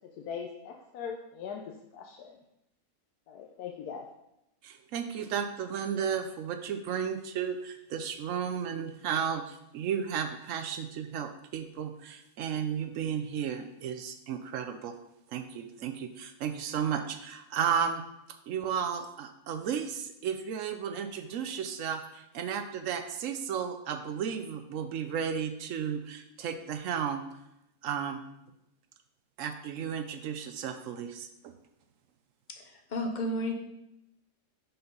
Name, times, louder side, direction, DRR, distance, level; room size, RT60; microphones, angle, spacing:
voice 1, 0.2-2.4 3.3-4.1, left 6 dB, 80° left, 2 dB, 1.2 m, -40 dB
voice 2, 4.6-15.0 15.3-18.0 18.5-27.2 27.8-28.2 29.4-31.5, right 7 dB, 65° right, 7 dB, 0.8 m, -33 dB
voice 3, 32.9-33.5, left 1 dB, 40° left, 3 dB, 0.7 m, -31 dB
5.7 x 4.2 x 5.3 m, 0.84 s
omnidirectional pair, 1.7 m